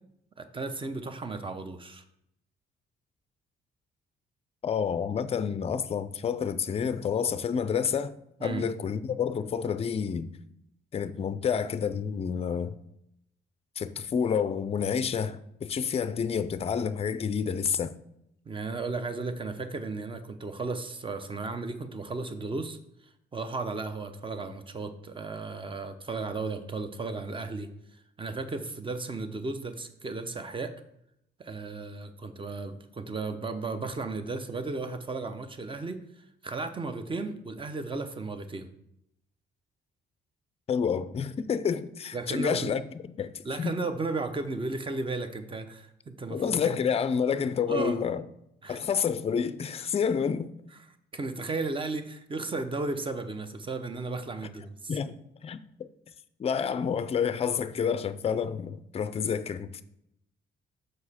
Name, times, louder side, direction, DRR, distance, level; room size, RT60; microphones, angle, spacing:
voice 1, 0.4-2.0 8.4-8.7 18.4-22.8 23.3-27.7 28.2-30.7 31.4-38.7 42.1-42.7 43.4-46.8 47.7-48.0 48.6-48.8 51.1-55.0, right 3 dB, 25° right, 0.7 m, -34 dB
voice 2, 4.6-8.1 8.4-10.3 10.9-12.8 13.8-17.9 40.7-42.8 43.2-43.3 43.6-43.7 46.3-48.2 48.7-50.5 54.9-55.2 55.4-55.6 56.4-59.8, left 7 dB, 30° left, 0.4 m, -29 dB
6.4 x 4.8 x 4.2 m
cardioid pair, 90°, 20 cm